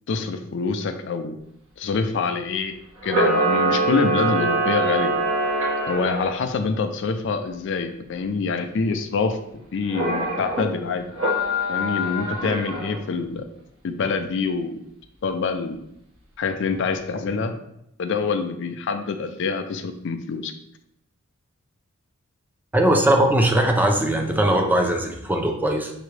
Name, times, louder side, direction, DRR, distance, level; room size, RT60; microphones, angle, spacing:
voice 1, 0.1-1.4 1.8-2.7 3.0-5.1 5.9-9.4 9.7-11.1 11.7-13.5 13.8-14.8 15.2-15.8 16.4-17.5 18.0-20.5, left 4 dB, 60° left, 7 dB, 0.4 m, -25 dB
Camera, 3.0-6.3 9.9-10.6 11.1-13.0, right 1 dB, 85° right, 1.8 m, -23 dB
voice 2, 22.7-25.9, right 1 dB, 10° right, 3 dB, 0.5 m, -20 dB
5.8 x 2.6 x 3.2 m, 0.77 s
head